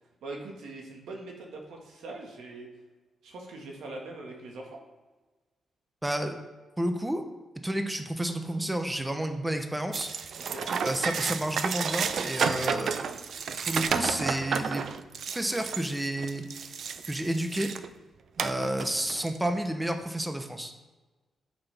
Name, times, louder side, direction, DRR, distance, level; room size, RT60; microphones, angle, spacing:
voice 1, 0.2-2.7 3.2-4.8 10.4-10.7, right 2 dB, 85° right, 1 dB, 1.6 m, -42 dB
voice 2, 6.0-6.3 6.8-7.2 7.6-10.1 10.8-13.0 13.7-14.9 15.3-16.7 17.1-17.7 18.4-20.7, right 1 dB, 5° right, 6 dB, 0.6 m, -30 dB
sound 1, 9.9-17.9 18.4-19.4, right 6 dB, 55° right, 0.4 m, -31 dB
9.3 x 6.0 x 3.4 m, 1.2 s
wide cardioid pair, 145°, 0 cm